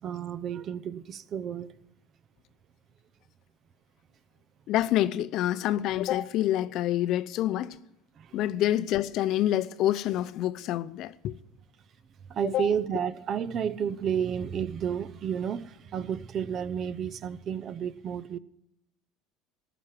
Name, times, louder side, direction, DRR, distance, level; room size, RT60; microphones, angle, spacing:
voice 1, 0.0-1.7 8.2-8.3 12.3-18.4, right 8 dB, 45° right, 0.6 m, -31 dB
voice 2, 4.7-7.8 8.3-11.3 12.4-12.7, left 13 dB, 60° left, 0.6 m, -27 dB
14.0 x 6.0 x 9.4 m
supercardioid pair, 95°, 0 cm